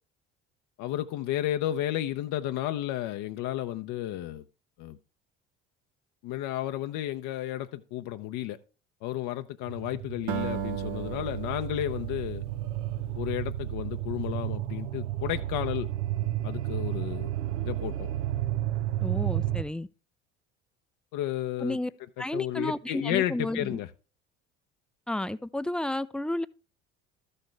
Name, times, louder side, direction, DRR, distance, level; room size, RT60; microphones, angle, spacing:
voice 1, 0.8-4.4 4.8-5.0 6.2-8.6 9.0-12.4 13.2-15.9 16.4-17.3 17.6-18.1 21.1-21.8 22.2-23.9, left 13 dB, 60° left, 0.7 m, -32 dB
sound 1, 9.7-19.6, right 13 dB, 85° right, 0.6 m, -32 dB
Acoustic guitar, 10.3-14.7, right 11 dB, 70° right, 1.0 m, -37 dB
voice 2, 19.0-19.9 21.6-21.9 22.2-23.8 25.1-26.5, left 1 dB, 5° left, 0.4 m, -32 dB
13.0 x 6.5 x 3.3 m
hypercardioid pair, 65°, 35 cm